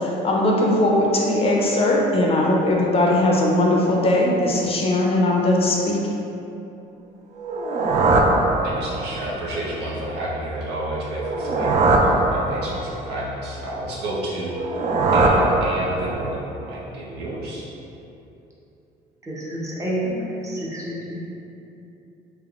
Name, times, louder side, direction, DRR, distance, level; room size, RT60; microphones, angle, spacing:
voice 1, 0.0-6.0, left 1 dB, 35° left, -2 dB, 0.5 m, -19 dB
sound 1, 7.4-9.2 11.1-13.0 14.5-16.3, right 2 dB, 45° right, 0.4 m, -20 dB
voice 2, 8.6-14.6 15.1-17.6, right 1 dB, 75° right, -5 dB, 0.8 m, -30 dB
voice 3, 19.2-21.3, right 1 dB, 20° right, -5 dB, 0.7 m, -29 dB
3.4 x 3.1 x 2.4 m, 2.8 s
cardioid pair, 110°, 17 cm